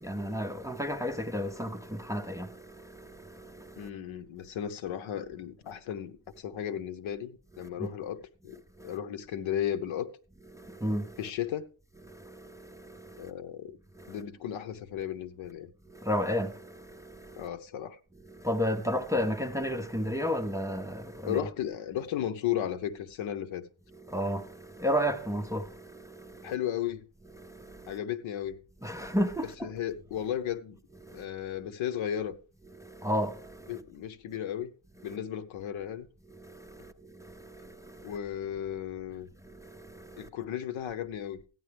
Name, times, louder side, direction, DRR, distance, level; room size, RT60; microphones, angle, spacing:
voice 1, 0.0-3.9 7.6-7.9 8.8-9.0 10.5-11.2 12.0-13.3 13.9-14.2 15.9-17.5 18.2-21.4 23.9-26.5 27.4-28.0 28.8-29.7 31.0-31.3 32.7-33.8 35.0-35.2 36.3-38.2 39.4-40.3, equal, 5° right, 0.5 m, -33 dB
voice 2, 3.8-10.1 11.2-11.6 13.2-13.8 14.1-15.7 17.4-18.0 21.3-23.7 26.4-27.1 27.9-28.6 29.6-30.8 31.1-32.3 33.7-34.7 35.0-36.1 38.0-39.3 40.2-41.4, left 10 dB, 70° left, 1.0 m, -35 dB
14.5 x 9.6 x 3.4 m
cardioid pair, 140°, 49 cm